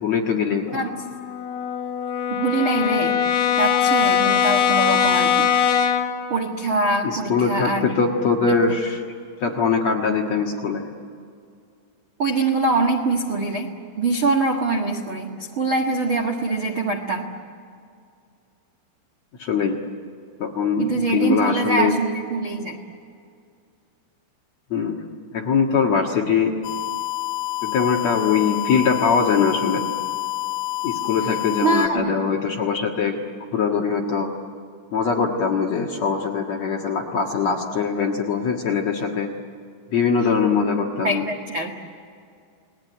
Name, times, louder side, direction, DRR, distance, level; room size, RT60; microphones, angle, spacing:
voice 1, 0.0-0.8 7.0-9.0 9.4-10.9 19.4-19.8 20.4-21.9 24.7-25.0 25.3-26.5 27.6-29.8 30.8-33.1 33.5-34.3 34.9-39.3 39.9-41.2, left 5 dB, 55° left, 0 dB, 2.0 m, -22 dB
Brass instrument, 0.7-6.2, left 8 dB, 90° left, 4.0 m, -21 dB
voice 2, 2.3-3.2 3.6-5.5 6.3-8.1 8.4-8.5 12.2-17.3 20.8-22.8 31.6-32.2 41.0-41.7, right 3 dB, 65° right, 1 dB, 1.2 m, -23 dB
sound 1, 26.6-31.9, left 17 dB, 70° left, 3.3 m, -28 dB
30.0 x 20.0 x 9.3 m, 2.4 s
omnidirectional pair, 5.3 m